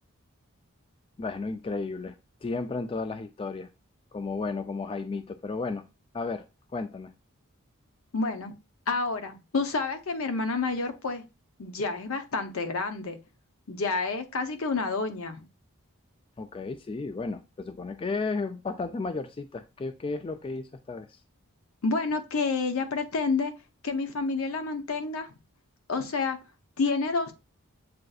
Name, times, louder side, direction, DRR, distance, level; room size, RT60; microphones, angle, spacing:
voice 1, 1.2-2.1 2.4-3.7 4.1-5.8 6.1-6.4 6.7-7.1 16.4-21.2, left 3 dB, 25° left, 0.3 m, -33 dB
voice 2, 8.1-8.5 8.9-11.2 11.6-13.2 13.7-15.5 21.8-23.5 23.8-25.3 25.9-26.4 26.8-27.3, left 4 dB, 70° left, 0.8 m, -29 dB
7.5 x 2.5 x 2.3 m
head